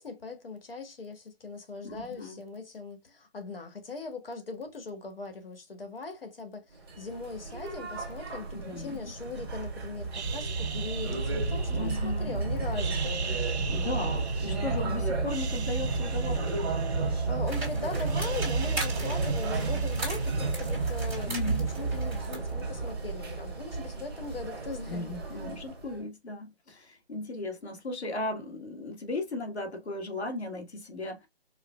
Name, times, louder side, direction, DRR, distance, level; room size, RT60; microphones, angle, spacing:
voice 1, 0.0-13.4 17.1-25.5, left 3 dB, 60° left, 1.5 m, -40 dB
voice 2, 1.8-2.4 8.5-9.1 11.7-12.4 13.7-16.5 21.3-21.7 24.9-31.3, left 2 dB, 85° left, 1.6 m, -36 dB
sound 1, 6.8-26.0, right 3 dB, 20° right, 1.0 m, -32 dB
sound 2, 10.1-12.3 12.7-14.9 15.2-17.6 17.9-20.7, right 6 dB, 85° right, 0.6 m, -42 dB
sound 3, 17.5-22.5, right 2 dB, 5° right, 1.9 m, -39 dB
5.0 x 2.5 x 2.3 m
hypercardioid pair, 170°, 32 cm